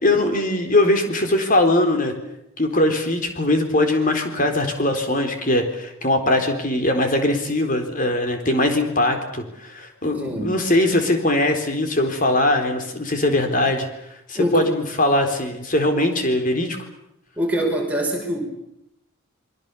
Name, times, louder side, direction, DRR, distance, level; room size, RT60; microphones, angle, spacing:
voice 1, 0.0-2.1 2.6-13.9 14.3-16.8, left 1 dB, 40° left, 5 dB, 4.0 m, -21 dB
voice 2, 10.2-10.5 14.3-14.7 17.4-18.5, equal, 5° right, 0 dB, 5.5 m, -23 dB
28.0 x 23.0 x 7.0 m, 0.79 s
head